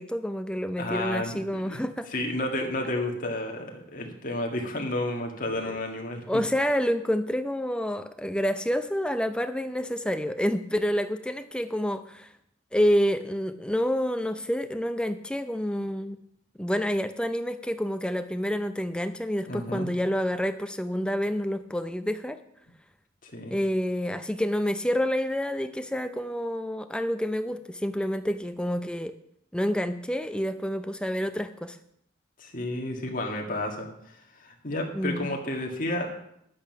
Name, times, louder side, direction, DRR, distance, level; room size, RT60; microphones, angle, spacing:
voice 1, 0.0-2.1 5.5-5.8 6.3-12.3 12.7-16.2 16.6-22.4 23.5-29.1 29.5-31.8 34.9-35.3, equal, 5° left, 10 dB, 0.5 m, -28 dB
voice 2, 0.8-1.8 2.1-6.2 19.5-19.9 23.2-23.5 32.4-36.1, left 1 dB, 40° left, 2 dB, 1.8 m, -31 dB
11.0 x 8.7 x 5.8 m, 0.75 s
head